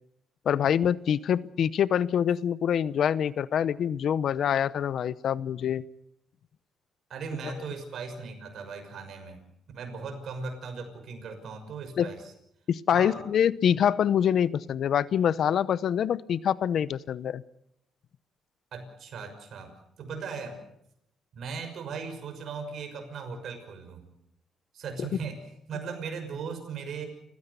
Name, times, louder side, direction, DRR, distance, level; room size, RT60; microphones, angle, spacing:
voice 1, 0.5-5.8 12.0-12.1 12.7-17.4 25.0-25.1, left 9 dB, 65° left, 18 dB, 0.7 m, -25 dB
voice 2, 7.1-9.4 9.7-12.2 12.9-13.2 13.7-13.8 18.7-20.7 21.3-24.1 24.7-25.4 25.7-27.1, right 5 dB, 65° right, 6 dB, 6.1 m, -38 dB
29.0 x 16.0 x 6.9 m, 0.76 s
cardioid pair, 90°, 0 cm